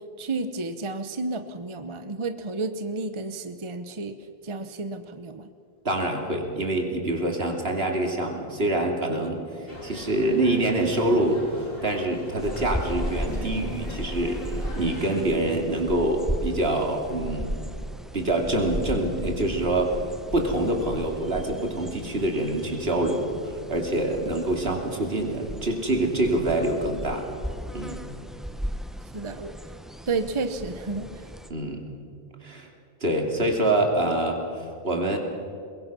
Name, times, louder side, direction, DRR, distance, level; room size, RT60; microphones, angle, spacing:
voice 1, 0.2-4.1 4.4-5.5 29.1-29.5 30.1-31.3, right 3 dB, 30° right, 8 dB, 0.9 m, -31 dB
voice 2, 5.8-17.5 18.1-19.9 20.3-27.3 27.7-28.0 31.5-31.8 32.4-32.7 33.0-35.2, right 1 dB, 70° right, 2 dB, 2.9 m, -26 dB
sound 1, 9.7-15.2, left 2 dB, 65° left, 2.9 m, -40 dB
sound 2, 12.4-31.5, equal, ahead, 0.9 m, -36 dB
22.5 x 21.5 x 6.1 m, 2.4 s
omnidirectional pair, 1.1 m